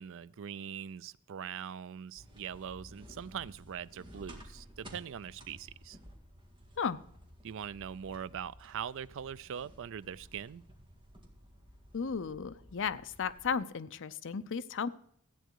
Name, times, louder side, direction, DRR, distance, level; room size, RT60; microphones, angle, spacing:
voice 1, 0.0-6.0 7.4-10.6, right 8 dB, 60° right, 18 dB, 0.4 m, -42 dB
sound 1, 2.1-13.5, equal, 25° right, 1.9 m, -54 dB
voice 2, 11.9-14.9, left 6 dB, 60° left, 13 dB, 0.6 m, -34 dB
14.0 x 9.0 x 4.7 m, 0.67 s
head